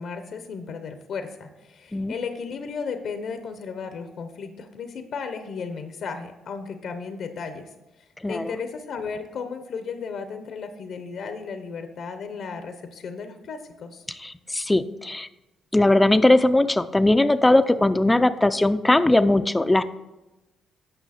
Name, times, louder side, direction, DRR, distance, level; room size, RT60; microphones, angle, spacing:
voice 1, 0.0-7.7 8.0-14.0, left 5 dB, 70° left, 8 dB, 0.8 m, -34 dB
voice 2, 14.2-15.3 15.7-19.8, left 2 dB, 15° left, 12 dB, 0.4 m, -19 dB
8.9 x 5.6 x 4.2 m, 1.0 s
cardioid pair, 90°, 0 cm